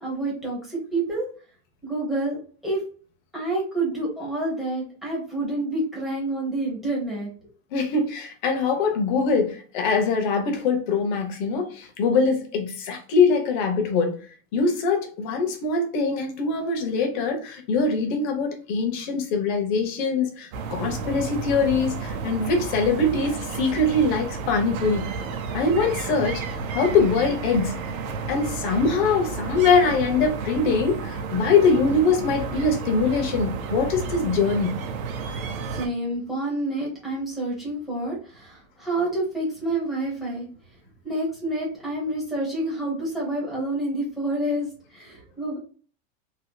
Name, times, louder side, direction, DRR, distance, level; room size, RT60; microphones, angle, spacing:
voice 1, 0.0-1.3 1.8-2.8 3.3-7.3 35.7-40.5 41.0-45.6, right 2 dB, ahead, 1.0 m, -28 dB
voice 2, 7.7-14.2 14.5-25.1 25.5-26.4 26.7-27.7 28.3-34.8, left 4 dB, 35° left, 0.7 m, -23 dB
sound 1, 20.5-35.9, right 5 dB, 85° right, 0.8 m, -32 dB
3.3 x 2.8 x 2.2 m
supercardioid pair, 175°, 40 cm